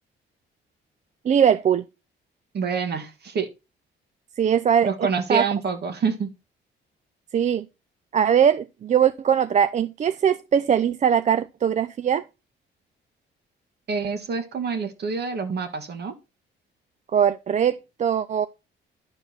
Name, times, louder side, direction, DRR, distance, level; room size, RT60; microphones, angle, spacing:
voice 1, 1.3-1.8 4.4-5.4 7.3-7.7 8.1-12.2 17.1-18.5, right 8 dB, 35° right, 0.4 m, -21 dB
voice 2, 2.5-3.5 4.8-6.3 13.9-16.1, right 5 dB, 55° right, 1.6 m, -27 dB
11.5 x 4.6 x 4.0 m
cardioid pair, 90°, 20 cm